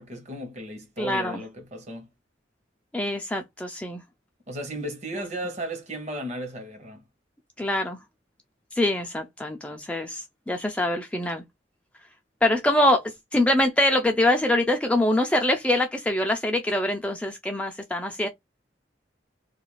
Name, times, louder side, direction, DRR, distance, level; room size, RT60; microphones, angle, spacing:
voice 1, 0.0-2.1 4.5-7.0, right 1 dB, 40° right, 0.9 m, -35 dB
voice 2, 1.0-1.4 2.9-4.0 7.6-8.0 8.7-11.4 12.4-18.3, left 1 dB, 5° left, 0.3 m, -24 dB
2.4 x 2.3 x 3.1 m
head